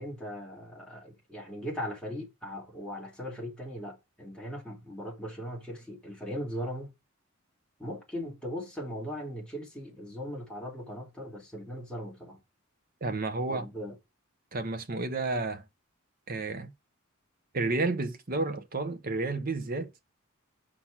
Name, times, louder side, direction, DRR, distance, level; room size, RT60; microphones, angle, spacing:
voice 1, 0.0-6.9 7.8-12.4 13.5-14.0, equal, 5° left, 2.4 m, -39 dB
voice 2, 13.0-13.7 14.5-15.6 16.3-16.7 17.5-19.9, right 3 dB, 45° right, 0.9 m, -31 dB
6.1 x 4.3 x 5.9 m
head